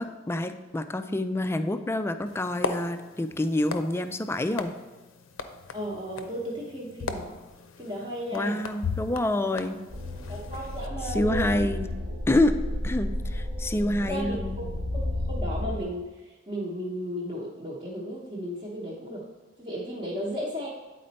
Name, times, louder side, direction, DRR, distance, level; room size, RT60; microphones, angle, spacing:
voice 1, 0.0-4.7 8.3-9.8 11.1-11.9 12.3-12.5 12.8-14.6, left 1 dB, 10° left, 9 dB, 0.3 m, -27 dB
sound 1, 2.3-10.9, left 4 dB, 75° left, 0.6 m, -38 dB
voice 2, 5.7-7.3 7.8-8.6 10.3-11.6 14.0-14.7 14.9-19.2 19.6-20.7, equal, 30° right, -6 dB, 0.9 m, -35 dB
sound 2, 9.9-15.8, left 1 dB, 60° right, 1.1 m, -32 dB
8.8 x 4.2 x 4.1 m, 1.2 s
head